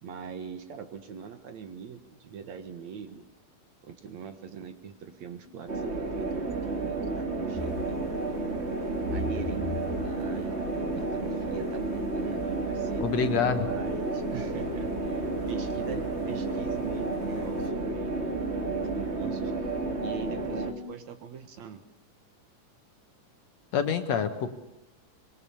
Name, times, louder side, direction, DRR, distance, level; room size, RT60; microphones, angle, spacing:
voice 1, 0.0-3.2 3.8-8.0 9.1-9.7 10.0-13.0 13.6-18.2 18.6-19.5 20.0-21.8, right 7 dB, 65° right, 9 dB, 2.6 m, -42 dB
sound 1, 4.8-20.9, left 5 dB, 35° left, 1.0 m, -42 dB
sound 2, 5.7-20.7, right 3 dB, 25° right, 1.5 m, -32 dB
sound 3, 7.6-17.7, left 3 dB, 85° left, 3.8 m, -42 dB
voice 2, 13.0-13.7 23.7-24.5, left 7 dB, 60° left, 8 dB, 2.4 m, -26 dB
25.0 x 21.5 x 7.1 m, 0.94 s
omnidirectional pair, 3.7 m